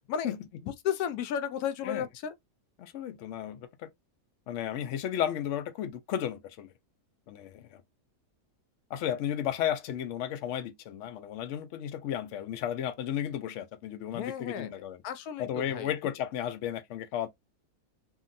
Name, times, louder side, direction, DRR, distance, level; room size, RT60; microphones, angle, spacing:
voice 1, 0.1-2.3 14.1-14.7 15.0-15.9, left 8 dB, 70° left, 1.0 m, -34 dB
voice 2, 2.8-3.9 4.5-6.7 7.3-7.8 8.9-15.0 15.4-17.3, left 10 dB, 90° left, 0.6 m, -34 dB
2.7 x 2.5 x 2.5 m
omnidirectional pair, 1.8 m